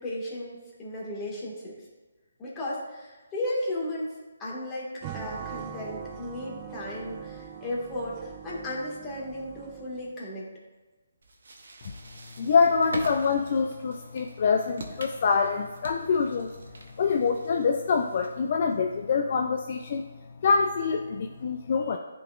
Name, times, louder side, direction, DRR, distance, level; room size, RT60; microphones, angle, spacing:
voice 1, 0.0-1.7 2.4-10.5, left 1 dB, 15° left, -5 dB, 1.6 m, -35 dB
sound 1, 5.0-10.2, right 8 dB, 25° right, 0.4 m, -42 dB
sound 2, 11.2-18.5, right 2 dB, 70° right, 0.9 m, -44 dB
voice 2, 12.4-16.5 17.0-20.0 20.4-22.0, left 5 dB, 45° left, 4 dB, 0.4 m, -25 dB
10.5 x 3.8 x 2.4 m, 1.2 s
figure-of-eight pair, 150°, 0 cm